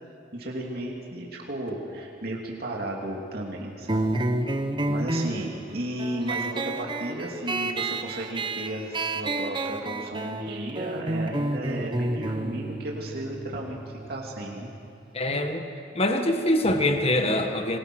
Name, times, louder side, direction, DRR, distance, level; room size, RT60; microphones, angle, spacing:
voice 1, 0.3-4.0 4.9-14.7, right 1 dB, 55° right, -2 dB, 2.8 m, -34 dB
sound 1, 3.9-15.0, right 2 dB, 25° right, 1.0 m, -30 dB
voice 2, 15.1-15.7 15.9-17.8, left 1 dB, 35° left, 5 dB, 1.6 m, -24 dB
27.5 x 22.0 x 6.3 m, 2.5 s
head